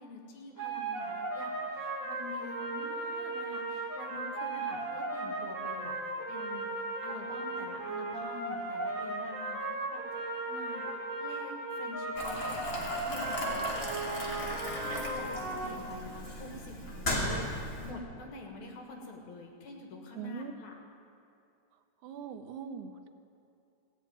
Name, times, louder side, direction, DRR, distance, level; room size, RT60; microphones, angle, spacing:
voice 1, 0.0-5.9 6.3-14.4 14.7-20.7, left 2 dB, 80° left, 1 dB, 3.0 m, -47 dB
sound 1, 0.6-15.7, right 2 dB, 45° right, 1.9 m, -36 dB
Boiling, 12.1-17.9, left 1 dB, 25° left, 1.6 m, -36 dB
voice 2, 20.2-20.5 22.0-23.1, right 7 dB, 85° right, 8 dB, 2.2 m, -41 dB
16.0 x 6.4 x 9.1 m, 2.6 s
omnidirectional pair, 3.4 m